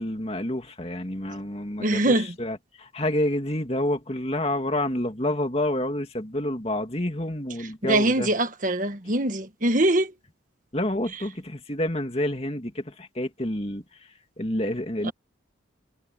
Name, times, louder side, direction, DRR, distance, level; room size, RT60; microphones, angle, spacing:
voice 1, 0.0-2.1 2.4-8.3 10.7-13.8 14.4-15.1, left 1 dB, 30° left, 2.6 m, -28 dB
voice 2, 1.8-2.4 7.6-10.1 11.1-11.2 15.0-15.1, right 1 dB, 40° right, 1.6 m, -23 dB
head